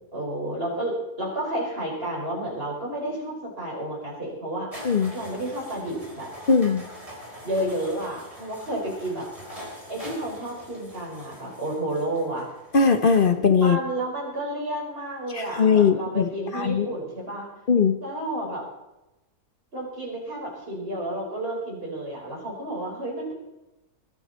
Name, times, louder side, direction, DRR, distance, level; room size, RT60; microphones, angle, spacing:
voice 1, 0.1-4.7 5.1-6.3 7.4-9.3 9.9-12.5 13.6-17.5 18.0-18.6 19.7-23.3, right 1 dB, 35° right, -3 dB, 5.7 m, -31 dB
sound 1, 4.7-13.3, equal, 20° right, 4.5 m, -43 dB
voice 2, 6.5-6.9 12.7-13.8 15.3-16.9 17.7-18.0, left 5 dB, 40° left, 8 dB, 0.9 m, -20 dB
20.5 x 12.5 x 4.4 m, 0.94 s
omnidirectional pair, 1.6 m